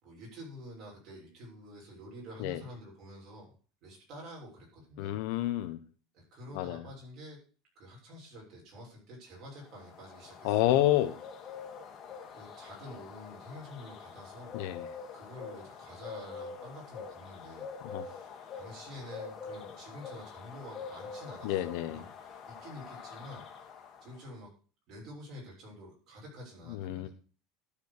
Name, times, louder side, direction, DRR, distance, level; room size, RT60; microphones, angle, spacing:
voice 1, 0.0-3.5 3.8-5.2 6.1-7.4 7.7-10.9 12.3-14.6 15.1-17.7 18.0-23.4 24.0-24.5 24.9-27.1, equal, 40° right, -2 dB, 6.6 m, -48 dB
voice 2, 5.0-5.8 6.5-6.8 10.4-11.1 14.5-14.9 17.8-18.1 21.4-22.0 26.7-27.1, left 14 dB, 60° left, 10 dB, 1.0 m, -29 dB
sound 1, 9.6-24.2, left 5 dB, 25° left, 1.8 m, -46 dB
12.5 x 5.1 x 6.7 m, 0.38 s
cardioid pair, 175°, 0 cm